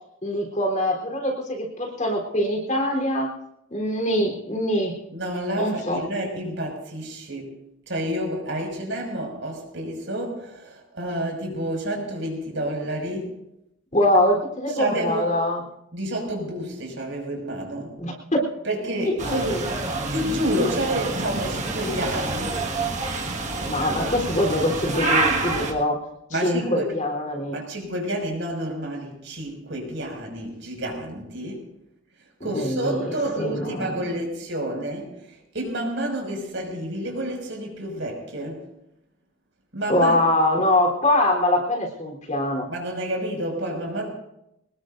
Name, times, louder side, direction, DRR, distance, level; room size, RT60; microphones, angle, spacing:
voice 1, 0.2-3.3 3.7-5.0 5.6-6.0 13.9-15.6 18.0-18.4 19.0-19.7 23.6-26.0 26.3-27.6 32.4-34.2 39.9-42.7, left 1 dB, 35° left, 0 dB, 3.8 m, -23 dB
voice 2, 5.1-7.6 7.9-13.4 14.7-15.3 15.9-18.0 18.6-19.6 20.1-22.6 26.3-26.9 27.5-31.6 32.4-38.7 39.7-40.2 42.7-44.1, right 1 dB, 60° right, 1 dB, 6.3 m, -29 dB
sound 1, 19.2-25.7, right 3 dB, 35° right, 1.8 m, -27 dB
25.5 x 20.0 x 2.7 m, 0.82 s
head